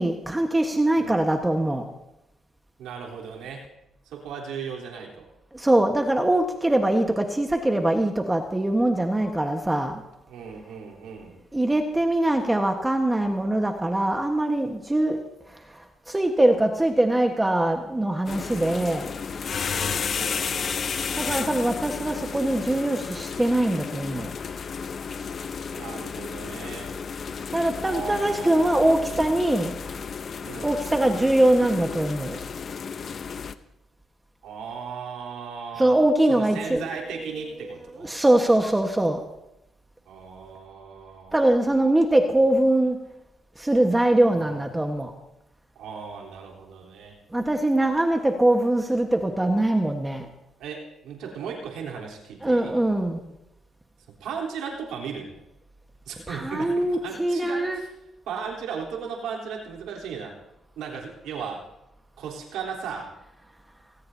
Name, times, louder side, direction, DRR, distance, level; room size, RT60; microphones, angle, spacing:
voice 1, 0.0-1.8 5.5-10.0 11.5-15.2 15.5-19.1 21.1-24.3 27.5-29.7 30.6-32.4 35.8-36.9 37.2-37.3 37.7-37.8 38.0-39.2 41.3-43.0 43.6-45.1 47.3-50.3 52.4-53.2 56.3-57.8, right 1 dB, 15° right, 4 dB, 1.4 m, -22 dB
voice 2, 2.8-3.7 4.1-5.3 10.3-11.4 19.7-20.8 25.7-26.9 27.8-28.9 30.5-30.8 34.4-36.0 36.3-38.1 40.1-41.4 44.3-44.7 45.8-47.2 50.6-52.7 54.2-55.4 56.1-56.7 57.0-57.9 58.3-60.4 60.8-61.6 62.2-63.2, right 6 dB, 90° right, -2 dB, 3.7 m, -36 dB
sound 1, 18.3-33.5, left 6 dB, 50° left, 0.7 m, -32 dB
19.0 x 18.5 x 2.8 m, 0.89 s
cardioid pair, 90°, 0 cm